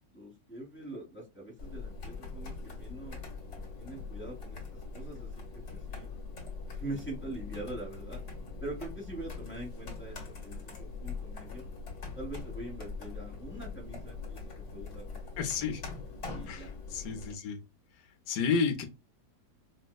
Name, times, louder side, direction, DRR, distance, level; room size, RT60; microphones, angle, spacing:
voice 1, 0.1-3.2 3.8-6.1 6.7-8.2 8.6-11.7 12.1-14.4 14.7-15.5 16.3-16.7, right 2 dB, 10° left, 0.7 m, -43 dB
sound 1, 1.6-17.4, left 4 dB, 50° left, 1.4 m, -42 dB
voice 2, 15.4-15.8 16.5-17.6 18.3-18.8, left 5 dB, 75° left, 1.3 m, -31 dB
5.1 x 2.1 x 2.2 m
omnidirectional pair, 1.8 m